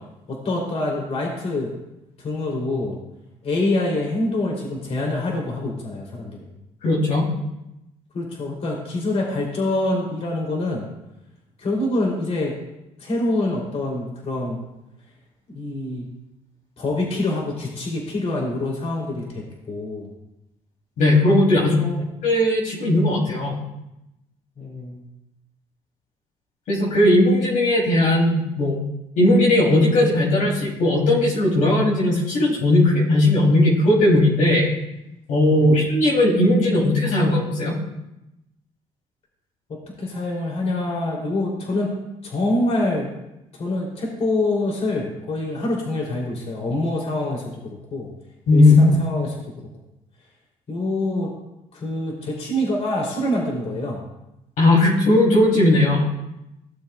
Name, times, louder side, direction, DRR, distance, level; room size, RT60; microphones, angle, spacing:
voice 1, 0.3-1.7 2.2-2.9 3.4-6.5 8.1-10.9 11.6-12.5 13.0-14.6 15.5-16.1 16.8-20.1 21.6-22.1 24.6-25.0 35.5-35.7 40.0-41.9 42.2-43.1 43.5-47.4 47.9-48.1 48.5-49.3 50.7-51.3 51.7-54.0, left 2 dB, 50° left, -2 dB, 3.0 m, -25 dB
voice 2, 6.8-7.3 21.0-21.8 22.2-23.6 26.7-28.8 29.2-34.7 35.3-37.7 48.5-49.0 54.6-56.0, left 1 dB, 70° left, -4 dB, 3.0 m, -17 dB
16.5 x 7.0 x 2.3 m, 0.91 s
cardioid pair, 90°, 14 cm